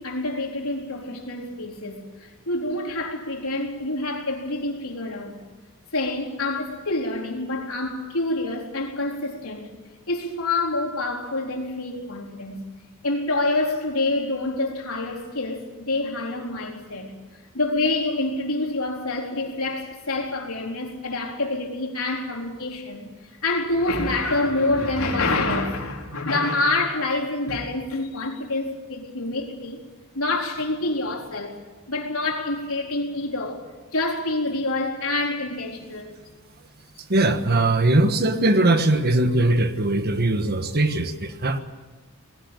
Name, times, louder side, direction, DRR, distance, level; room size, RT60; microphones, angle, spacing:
voice 1, 0.0-5.4 5.9-9.7 10.1-12.6 13.0-17.1 17.5-23.1 23.4-29.8 30.1-31.6 31.9-33.6 33.9-36.1, left 2 dB, 85° left, 4.0 m, -27 dB
voice 2, 37.1-41.6, right 2 dB, 50° right, 1.4 m, -20 dB
20.0 x 17.0 x 8.9 m
head